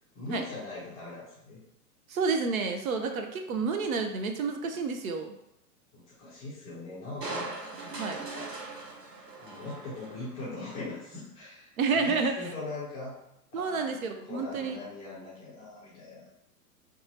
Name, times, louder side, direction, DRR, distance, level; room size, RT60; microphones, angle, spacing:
voice 1, 0.1-1.6 5.9-7.5 9.4-11.7 12.0-13.2 13.5-14.0 14.3-16.2, left 2 dB, 15° left, -8 dB, 0.5 m, -40 dB
voice 2, 2.1-5.3 8.0-8.2 11.8-12.5 13.5-14.8, right 4 dB, 65° right, 6 dB, 0.5 m, -30 dB
Crushing, 7.2-10.6 11.0-11.1, right 3 dB, 80° right, 0.9 m, -40 dB
2.7 x 2.3 x 2.7 m, 0.84 s
figure-of-eight pair, 110°, 47 cm